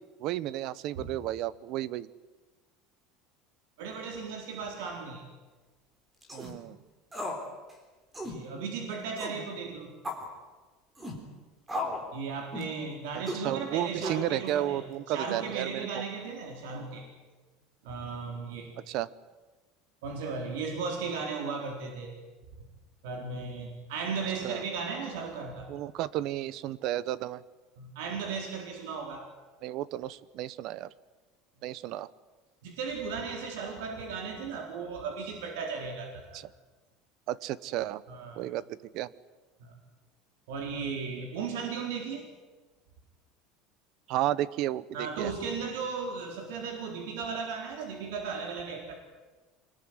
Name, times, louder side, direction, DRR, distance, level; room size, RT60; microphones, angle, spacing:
voice 1, 0.2-2.1 6.3-6.8 13.1-16.0 18.9-19.1 24.4-24.6 25.7-27.4 29.6-30.9 31.6-32.1 36.3-36.5 37.3-38.0 38.4-39.1 44.1-45.3, right 13 dB, 45° right, 20 dB, 0.8 m, -33 dB
voice 2, 3.8-5.2 8.2-9.9 12.1-17.1 17.8-18.7 20.0-22.2 23.0-25.7 27.8-29.2 32.6-36.4 38.1-38.4 39.6-39.8 40.5-42.3 44.9-49.0, right 5 dB, 85° right, 3 dB, 4.2 m, -36 dB
sound 1, 6.2-6.5 7.1-7.4 7.7-7.8 8.1-8.4 9.2-9.4 10.0-10.3 11.0-11.2 11.7-12.1 12.5-12.8 13.3-13.5 14.0-14.5, left 1 dB, 10° right, 3.7 m, -35 dB
25.0 x 20.5 x 9.7 m, 1.2 s
cardioid pair, 175°, 0 cm